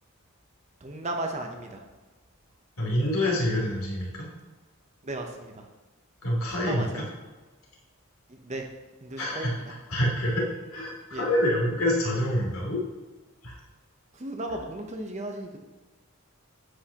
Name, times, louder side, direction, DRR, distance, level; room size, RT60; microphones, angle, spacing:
voice 1, 0.8-1.8 5.0-5.5 6.6-7.0 8.3-8.7 9.0-9.6 11.1-11.2 14.1-15.6, right 2 dB, 30° right, 3 dB, 0.8 m, -35 dB
voice 2, 2.8-4.3 6.2-7.0 9.2-10.4 10.7-12.8 13.4-13.5, left 1 dB, 70° left, -3 dB, 2.7 m, -27 dB
9.7 x 8.3 x 2.9 m, 1.3 s
head